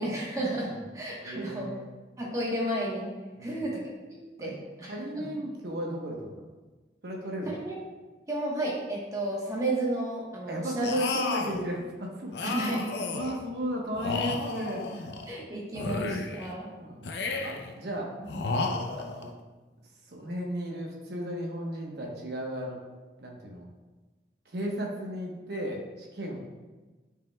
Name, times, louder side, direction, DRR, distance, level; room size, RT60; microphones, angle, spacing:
voice 1, 0.0-1.7 2.2-3.1 3.4-5.3 7.4-7.7 8.3-11.0 12.5-12.9 15.3-16.7, right 1 dB, 20° right, -4 dB, 1.2 m, -32 dB
voice 2, 1.2-1.9 3.3-3.6 4.4-4.5 4.9-6.5 7.0-7.6 10.5-12.3 13.1-15.1 16.7-18.1 19.0-19.3 20.0-22.8 23.2-23.7 24.5-26.4, equal, 65° right, -1 dB, 1.1 m, -35 dB
sound 1, 10.8-11.6 12.3-13.4 13.9-15.3 15.7-16.5 17.0-17.7 18.3-19.3, left 3 dB, 75° left, 0.6 m, -32 dB
9.0 x 5.0 x 2.3 m, 1.2 s
head